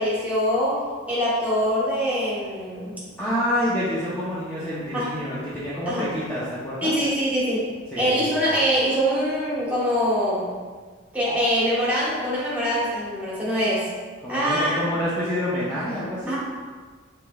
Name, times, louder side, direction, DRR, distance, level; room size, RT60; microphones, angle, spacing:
voice 1, 0.0-2.9 4.9-5.1 5.9-6.1 6.8-7.6 7.9-10.5 11.1-13.9 14.3-14.8 16.3-16.4, equal, 10° right, -8 dB, 1.1 m, -23 dB
voice 2, 3.2-6.9 7.9-8.3 14.2-16.3, equal, 10° left, -10 dB, 0.6 m, -27 dB
4.9 x 3.5 x 2.3 m, 1.5 s
head